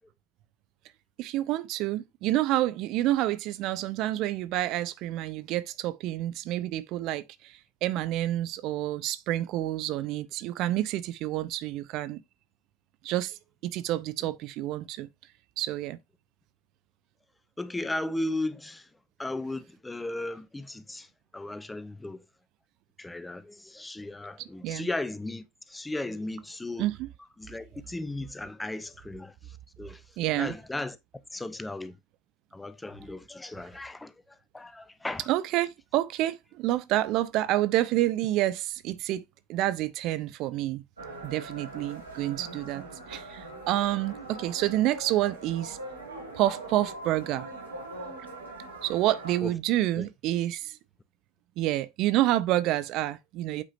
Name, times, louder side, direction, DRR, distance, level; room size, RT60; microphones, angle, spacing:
voice 1, 1.2-12.2 13.0-13.4 13.6-15.1 15.6-16.0 24.6-24.9 26.8-27.1 30.2-30.5 35.3-39.2 39.5-40.8 41.2-45.8 46.3-47.5 48.8-50.8 51.6-53.6, right 15 dB, 45° right, 0.5 m, -28 dB
voice 2, 17.6-18.9 19.2-21.1 21.3-22.2 23.0-26.9 27.4-30.0 30.4-31.0 31.3-32.0 32.5-34.1 34.5-35.3 49.4-49.5 50.0-50.1, left 2 dB, 10° left, 0.7 m, -36 dB
sound 1, 41.0-49.4, right 2 dB, 80° right, 2.3 m, -42 dB
8.4 x 4.9 x 2.7 m
figure-of-eight pair, 75°, 0 cm